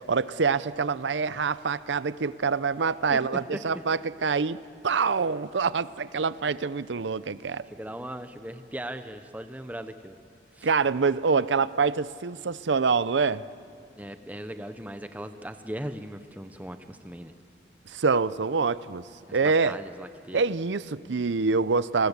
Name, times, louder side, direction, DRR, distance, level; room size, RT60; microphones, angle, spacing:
voice 1, 0.0-7.6 10.6-13.4 17.9-19.1 19.3-19.8 20.3-22.1, right 5 dB, 90° right, 0.6 m, -26 dB
voice 2, 3.1-3.8 7.7-10.2 10.5-10.7 14.0-17.3 19.3-20.4, right 1 dB, 10° right, 0.7 m, -38 dB
28.0 x 20.5 x 8.2 m
head